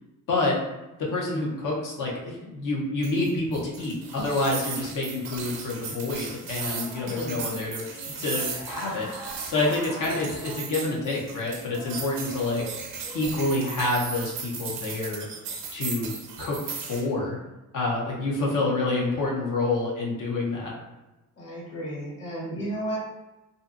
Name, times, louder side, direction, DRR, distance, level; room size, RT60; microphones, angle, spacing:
voice 1, 0.3-0.6 1.0-9.1 9.5-12.6 13.1-15.3 15.7-16.1 16.4-17.4 17.7-20.7, left 2 dB, 70° left, -3 dB, 0.8 m, -28 dB
sound 1, 3.0-17.0, right 5 dB, 90° right, 0.6 m, -37 dB
sound 2, 6.6-13.3, right 1 dB, 5° right, 0.5 m, -43 dB
voice 2, 7.0-7.4 21.4-23.0, right 1 dB, 50° left, -6 dB, 1.4 m, -33 dB
2.6 x 2.5 x 2.4 m, 1.1 s
cardioid pair, 120°, 32 cm